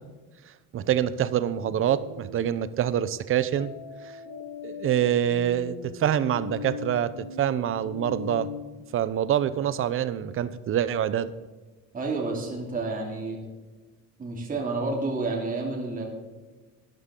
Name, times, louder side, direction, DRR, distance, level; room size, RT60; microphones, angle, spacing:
voice 1, 0.7-3.7 4.0-4.1 4.6-8.5 8.9-11.3, right 10 dB, 45° right, 15 dB, 0.8 m, -26 dB
sound 1, 1.6-2.4 3.5-8.6, left 6 dB, 80° left, 3.5 m, -39 dB
voice 2, 11.9-13.4 14.2-16.0, right 3 dB, 25° right, -1 dB, 2.9 m, -30 dB
13.0 x 11.0 x 3.8 m, 1.3 s
cardioid pair, 130°, 31 cm